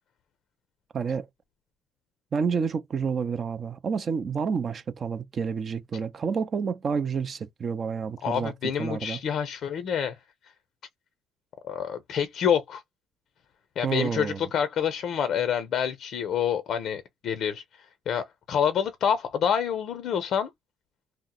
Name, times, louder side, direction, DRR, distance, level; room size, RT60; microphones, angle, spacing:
voice 1, 0.9-1.3 2.3-8.5 8.8-9.2 13.8-14.5, right 6 dB, 40° right, 0.5 m, -29 dB
voice 2, 8.2-10.2 11.6-12.8 13.8-20.5, left 8 dB, 60° left, 0.5 m, -27 dB
2.8 x 2.0 x 3.7 m
cardioid pair, 100°, 0 cm